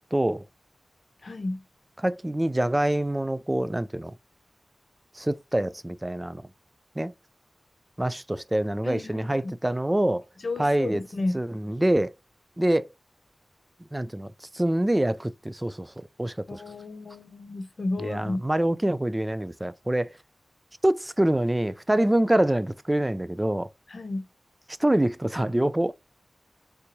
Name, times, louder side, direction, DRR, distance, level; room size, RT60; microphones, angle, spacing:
voice 1, 0.1-0.4 2.0-4.1 5.1-6.4 7.0-7.1 8.0-10.2 10.6-11.0 11.3-12.1 12.6-12.9 13.9-16.6 18.0-20.1 20.8-23.7 24.8-25.9, right 1 dB, 15° right, 0.3 m, -25 dB
voice 2, 1.2-1.6 8.8-9.5 10.4-11.4 16.5-18.4 23.9-24.3, left 2 dB, 65° left, 0.6 m, -32 dB
3.4 x 2.7 x 2.9 m
wide cardioid pair, 85°, 0 cm